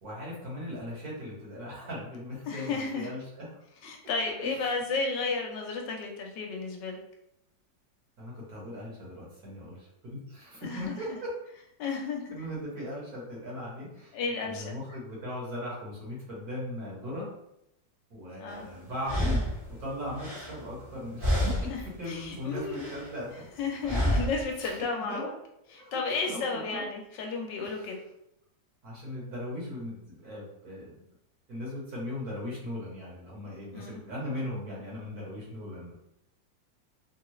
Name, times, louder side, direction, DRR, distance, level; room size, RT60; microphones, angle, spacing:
voice 1, 0.0-3.5 4.4-4.7 8.2-11.3 12.3-17.3 18.1-19.4 19.8-21.7 22.0-23.4 24.6-25.2 25.7-26.0 26.3-26.9 27.6-27.8 28.8-31.0 31.5-35.9, left 1 dB, 60° right, -5 dB, 1.6 m, -38 dB
voice 2, 2.5-3.1 3.8-7.0 10.6-11.2 11.8-12.4 14.1-14.7 18.4-18.7 21.7-21.8 22.1-22.9 23.6-25.3 25.7-28.0 33.7-34.0, left 4 dB, 80° left, 2 dB, 1.3 m, -33 dB
sound 1, 18.5-18.6 19.0-20.9 21.2-21.9 22.2-23.1 23.8-24.5, equal, 40° right, 0.8 m, -29 dB
3.6 x 2.3 x 3.0 m, 0.80 s
omnidirectional pair, 1.9 m